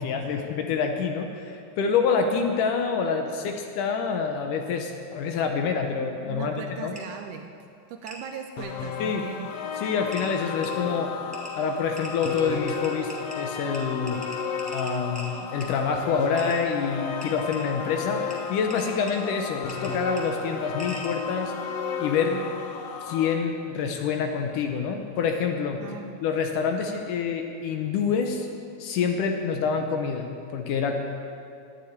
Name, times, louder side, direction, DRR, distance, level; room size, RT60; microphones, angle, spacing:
voice 1, 0.0-6.9 9.0-9.3 9.8-11.1 11.6-14.2 14.7-21.5 22.0-22.4 23.0-25.8 26.2-28.5 28.8-31.0, left 6 dB, 70° left, 4 dB, 2.2 m, -27 dB
voice 2, 6.3-7.5 7.9-9.5 22.1-22.5 25.8-26.2, right 7 dB, 80° right, 6 dB, 1.8 m, -39 dB
sound 1, 7.0-7.1 8.1-8.2 9.5-9.6 10.1-10.3 10.6-10.7 11.3-11.5 12.0-13.4 13.7-13.8 14.1-15.3 15.6-15.7 16.4-16.6 17.2-17.6 18.3-18.4 18.7-19.1 19.7-19.9 20.2-20.3 20.8-21.1, equal, 5° right, 1.4 m, -40 dB
sound 2, 8.6-23.3, left 6 dB, 85° left, 1.3 m, -34 dB
11.5 x 8.9 x 9.7 m, 2.5 s
omnidirectional pair, 4.2 m